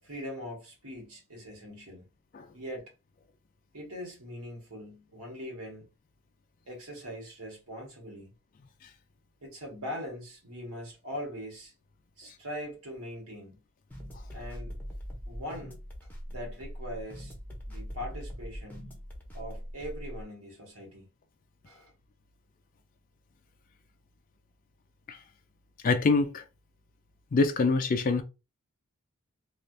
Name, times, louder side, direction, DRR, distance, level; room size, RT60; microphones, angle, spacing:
voice 1, 0.0-2.1 2.5-2.9 3.7-5.8 6.7-8.3 9.4-11.7 12.2-13.6 14.3-14.7 15.2-17.3 17.7-19.0 19.3-21.1 21.6-21.9, equal, 75° right, 1.4 m, -41 dB
sound 1, 13.9-20.2, equal, 10° left, 0.7 m, -41 dB
voice 2, 25.8-26.4 27.3-28.2, left 3 dB, 40° left, 0.3 m, -25 dB
3.2 x 2.4 x 2.6 m
head